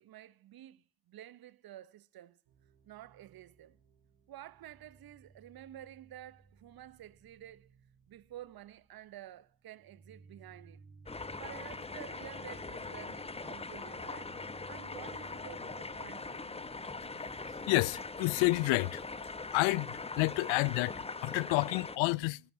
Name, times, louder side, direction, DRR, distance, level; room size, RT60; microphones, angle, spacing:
voice 1, 0.0-2.4 2.8-3.8 4.3-7.7 8.1-10.8 11.4-14.4 14.7-16.6, right 12 dB, 50° right, 0.8 m, -51 dB
sound 1, 2.5-19.1, right 4 dB, 70° right, 5.2 m, -59 dB
sound 2, 11.1-22.0, left 3 dB, 15° left, 0.9 m, -42 dB
voice 2, 17.7-19.0 19.5-22.4, left 23 dB, 80° left, 0.6 m, -30 dB
21.5 x 12.0 x 2.7 m
supercardioid pair, 70°, 46 cm